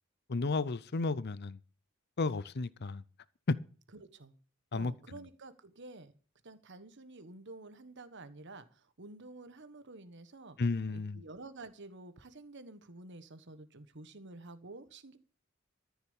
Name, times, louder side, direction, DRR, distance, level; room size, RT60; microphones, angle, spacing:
voice 1, 0.3-1.6 2.2-3.0 3.5-3.6 4.7-4.9 10.6-11.2, left 3 dB, 50° left, 0.6 m, -32 dB
voice 2, 3.9-4.4 4.7-6.1 6.4-10.6 10.9-15.2, right 2 dB, 60° right, 1.4 m, -50 dB
14.0 x 7.1 x 7.2 m
head